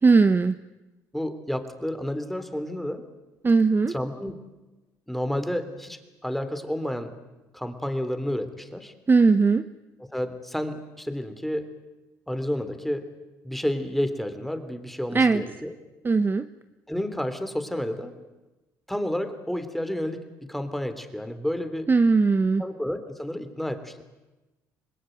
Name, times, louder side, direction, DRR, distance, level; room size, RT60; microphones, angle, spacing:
voice 1, 0.0-0.6 3.4-3.9 9.1-9.6 15.1-15.4 16.0-16.5 21.9-22.7, right 4 dB, 25° right, 12 dB, 1.0 m, -19 dB
voice 2, 1.1-3.0 3.9-4.3 5.1-7.1 7.5-8.9 10.1-11.7 12.3-13.1 13.4-15.7 16.9-18.1 18.9-21.9 22.6-24.0, left 1 dB, ahead, 9 dB, 3.4 m, -30 dB
27.0 x 20.5 x 9.3 m, 1.1 s
supercardioid pair, 75°, 8 cm